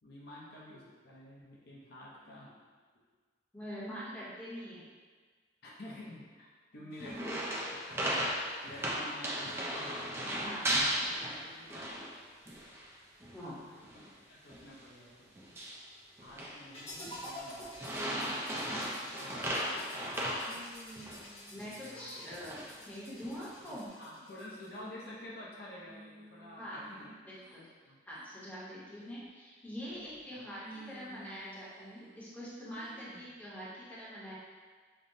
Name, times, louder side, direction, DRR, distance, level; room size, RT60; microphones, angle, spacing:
voice 1, 0.0-2.5 5.6-7.4 7.7-11.9 13.0-15.4 16.2-18.0 18.8-20.0 21.5-22.2 23.7-27.2 27.9-28.0 30.3-30.4, left 1 dB, 60° left, -5 dB, 0.6 m, -50 dB
voice 2, 3.5-4.8 6.8-7.4 10.3-11.3 11.7-11.8 13.3-13.5 21.5-23.9 26.6-27.7 28.1-34.3, equal, 10° left, -9 dB, 0.8 m, -44 dB
sound 1, 7.0-12.2 12.5-12.9 13.2-13.4 13.8-14.1 14.5-14.7 15.4-15.8 16.2-16.6 17.1-17.3 17.7-21.3 21.6-21.7 22.3-22.7 23.2-23.7, right 1 dB, 15° right, 0.4 m, -36 dB
sound 2, 16.7-24.8, left 1 dB, 35° left, 1.0 m, -49 dB
sound 3, 20.5-21.6 21.9-22.4 22.8-23.1 23.6-24.2 24.7-25.5 25.9-27.6 28.1-28.3 28.8-29.3 29.9-30.3 30.6-32.2 32.7-33.3, right 1 dB, 70° right, 0.9 m, -55 dB
5.3 x 2.1 x 2.6 m, 1.5 s
head